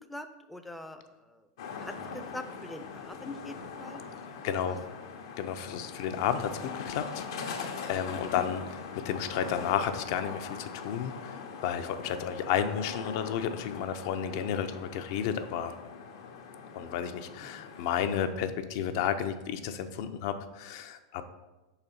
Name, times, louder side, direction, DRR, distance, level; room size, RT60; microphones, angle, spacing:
voice 1, 0.1-1.5 1.8-4.0 4.4-4.6 17.4-17.5, left 1 dB, 5° left, 7 dB, 0.4 m, -44 dB
sound 1, 1.6-18.3, left 5 dB, 80° left, 0.8 m, -42 dB
voice 2, 4.4-4.8 5.4-7.5 7.9-8.6 8.9-15.7 16.7-21.3, left 8 dB, 60° left, 9 dB, 0.5 m, -32 dB
4.6 x 4.0 x 5.7 m, 1.1 s
supercardioid pair, 140°, 2 cm